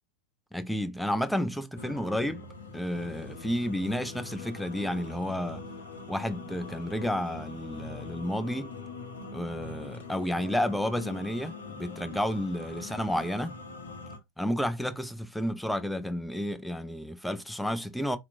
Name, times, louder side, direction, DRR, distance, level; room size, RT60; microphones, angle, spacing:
voice 1, 0.5-2.4 2.7-5.6 6.1-8.7 9.3-13.6 14.4-18.2, equal, ahead, 0.3 m, -31 dB
sound 1, 1.8-14.2, left 3 dB, 70° left, 0.6 m, -43 dB
2.8 x 2.1 x 2.5 m
figure-of-eight pair, 90°, 0 cm